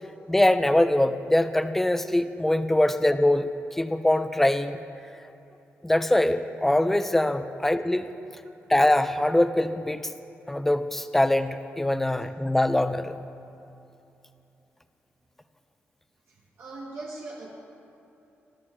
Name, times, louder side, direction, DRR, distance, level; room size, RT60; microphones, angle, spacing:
voice 1, 0.3-3.5 3.8-4.8 5.8-8.0 8.7-10.0 10.5-13.1, left 1 dB, 5° left, 10 dB, 0.4 m, -23 dB
voice 2, 16.3-17.5, right 2 dB, 65° right, -3 dB, 1.4 m, -40 dB
20.0 x 13.0 x 3.3 m, 2.8 s
wide cardioid pair, 165°, 4 cm